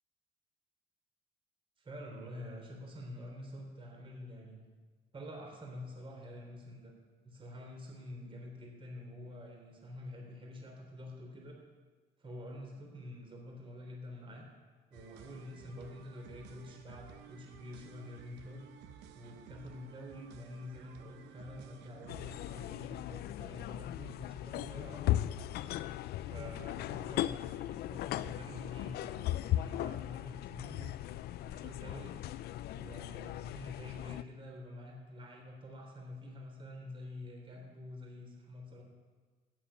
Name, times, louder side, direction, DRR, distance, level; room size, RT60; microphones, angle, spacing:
voice 1, 1.8-4.6 5.1-6.9 7.2-11.6 12.2-14.4 14.9-18.6 19.1-25.3 26.3-31.0 31.4-32.1 32.7-38.8, left 1 dB, 30° right, 0 dB, 3.3 m, -47 dB
sound 1, 14.9-22.6, right 8 dB, 85° right, 1.2 m, -55 dB
sound 2, 22.1-34.2, left 13 dB, 70° left, 0.5 m, -37 dB
14.0 x 9.4 x 5.7 m, 1.4 s
cardioid pair, 110°, 17 cm